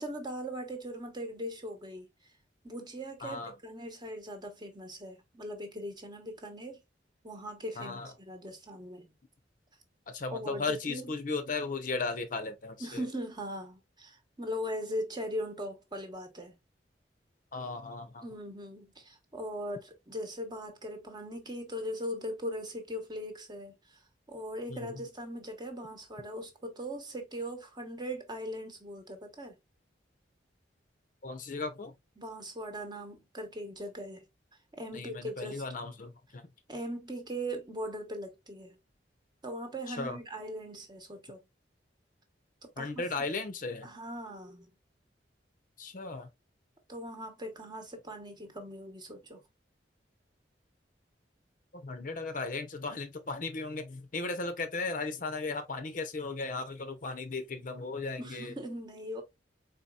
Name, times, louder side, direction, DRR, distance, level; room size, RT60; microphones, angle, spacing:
voice 1, 0.0-2.1 2.6-6.8 7.2-9.1 10.3-11.1 12.8-16.6 18.2-24.0 24.3-29.6 32.2-34.2 34.8-35.6 36.7-38.8 39.4-41.4 42.8-43.0 43.8-44.7 46.9-49.4 58.2-59.2, equal, 25° right, 1.0 m, -40 dB
voice 2, 3.2-3.5 7.8-8.1 10.1-13.0 17.5-18.2 24.7-24.9 31.2-31.9 34.9-36.4 39.9-40.2 42.8-43.9 45.8-46.3 51.8-58.5, left 3 dB, 45° left, 0.7 m, -36 dB
4.1 x 4.0 x 2.3 m
head